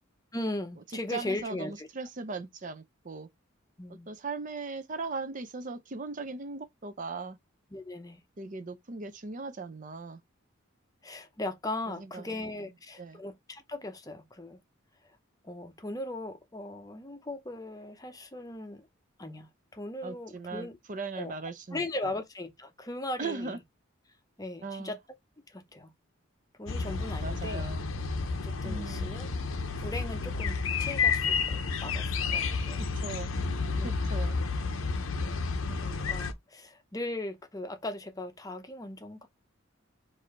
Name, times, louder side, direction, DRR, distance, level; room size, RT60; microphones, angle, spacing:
voice 1, 0.3-1.9 3.8-4.1 7.7-8.2 11.0-14.6 15.4-18.9 19.2-20.8 21.2-21.3 21.7-23.6 24.4-25.0 25.5-25.9 26.6-27.7 28.4-29.3 29.8-32.8 33.8-34.1 34.9-35.4 35.7-39.3, left 2 dB, 15° left, 0.6 m, -38 dB
voice 2, 1.1-3.3 4.1-7.4 8.4-10.2 12.0-12.2 13.0-13.2 20.0-21.8 23.2-23.6 24.6-24.9 27.2-27.8 28.6-29.1 33.0-33.3 33.8-34.4, right 3 dB, 40° right, 0.5 m, -38 dB
sound 1, 26.7-36.3, left 4 dB, 80° left, 0.7 m, -31 dB
4.7 x 2.6 x 4.1 m
head